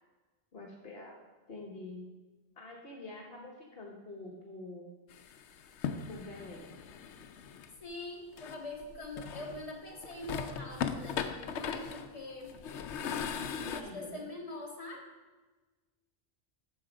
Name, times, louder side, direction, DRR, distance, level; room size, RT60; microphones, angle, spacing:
voice 1, 0.5-1.2 1.5-2.2 2.6-4.9 6.1-6.7 13.5-14.2, left 2 dB, 60° left, -1 dB, 1.3 m, -46 dB
sound 1, 5.1-7.7 8.4-9.7 10.0-13.8, left 7 dB, 85° left, 0.9 m, -38 dB
voice 2, 7.8-12.6 13.5-15.1, left 2 dB, 30° left, -1 dB, 1.6 m, -44 dB
9.4 x 6.5 x 5.0 m, 1.3 s
omnidirectional pair, 1.1 m